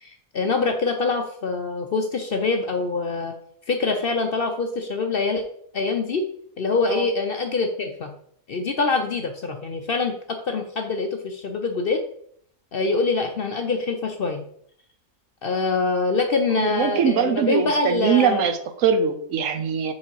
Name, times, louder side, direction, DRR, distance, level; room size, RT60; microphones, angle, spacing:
voice 1, 0.0-3.3 3.7-5.4 5.7-6.2 6.6-8.1 8.5-12.0 12.7-14.4 15.4-18.5, left 4 dB, 55° left, 5 dB, 0.7 m, -24 dB
voice 2, 16.5-19.9, right 7 dB, 70° right, 9 dB, 1.1 m, -22 dB
4.9 x 4.0 x 5.5 m, 0.64 s
omnidirectional pair, 1.5 m